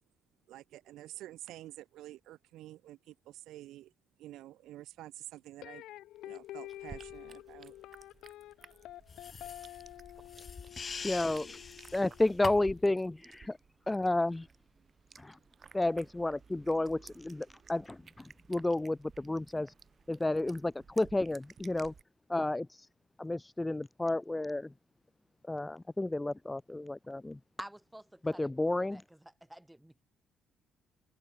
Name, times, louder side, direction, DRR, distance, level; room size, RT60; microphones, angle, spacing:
voice 1, 0.5-3.9 4.2-5.9 6.2-7.7, right 14 dB, 85° right, 2.5 m, -49 dB
sound 1, 5.6-12.7, left 14 dB, 85° left, 3.0 m, -49 dB
sound 2, 6.2-22.0, right 6 dB, 45° right, 7.9 m, -57 dB
sound 3, 9.1-12.9, left 5 dB, 40° left, 1.1 m, -44 dB
voice 2, 11.0-11.6 11.9-13.6 13.9-14.5 15.2-15.4 15.7-19.7 20.1-21.9 22.3-22.7 23.2-24.7 25.5-27.4 28.2-29.0, left 2 dB, 15° left, 0.8 m, -31 dB
voice 3, 27.6-28.4 28.8-29.0 29.5-30.0, right 1 dB, 5° right, 3.4 m, -47 dB
cardioid pair, 90°, 0 cm